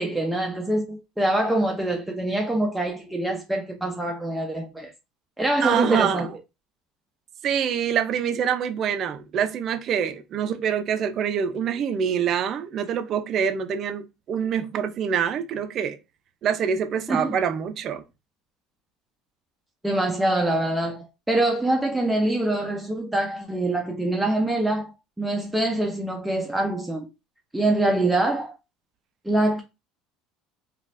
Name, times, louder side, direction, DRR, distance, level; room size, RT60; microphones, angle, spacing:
voice 1, 0.0-4.9 5.4-6.3 17.1-17.4 19.8-24.9 25.2-27.1 27.5-28.6 29.2-29.6, right 1 dB, 5° right, 0.7 m, -24 dB
voice 2, 5.6-6.3 7.4-16.0 16.4-18.0, right 8 dB, 50° right, 0.6 m, -25 dB
3.9 x 2.5 x 2.5 m
supercardioid pair, 90°, 0 cm